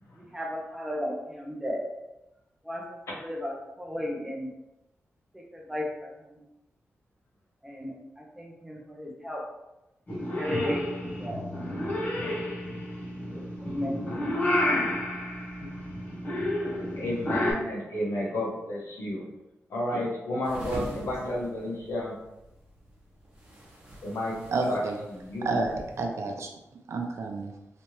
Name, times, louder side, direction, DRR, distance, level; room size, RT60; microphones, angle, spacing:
voice 1, 0.3-1.8 2.6-4.5 5.3-6.4 7.6-9.4 10.1-11.4 12.2-12.4 13.3-14.0, left 1 dB, 5° right, -1 dB, 0.6 m, -35 dB
Purr / Meow, 10.1-17.5, left 1 dB, 35° left, 0.9 m, -30 dB
voice 2, 17.0-19.2 19.7-22.1 24.0-24.4 24.7-24.8 25.1-25.6, left 1 dB, 70° left, -5 dB, 1.2 m, -31 dB
sound 1, 20.4-26.0, right 1 dB, 25° right, 1.3 m, -44 dB
voice 3, 24.5-24.9 25.4-26.5 26.9-27.5, right 3 dB, 75° right, 3 dB, 0.5 m, -29 dB
3.3 x 2.9 x 3.0 m, 0.95 s
wide cardioid pair, 160°, 5 cm